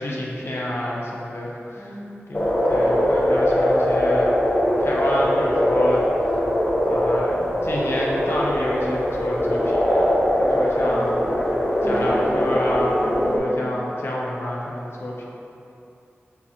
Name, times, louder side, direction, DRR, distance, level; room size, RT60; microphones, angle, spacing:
voice 1, 0.0-2.0 2.3-4.3 4.8-6.4 6.8-11.4 11.9-15.2, left 1 dB, 65° left, -4 dB, 0.6 m, -28 dB
voice 2, 1.8-2.5 10.8-11.0 11.8-12.5 13.1-13.3, right 1 dB, 25° right, -6 dB, 0.9 m, -36 dB
sound 1, 2.3-13.4, equal, 30° left, 0.7 m, -21 dB
6.7 x 2.9 x 2.3 m, 2.7 s
wide cardioid pair, 75°, 5 cm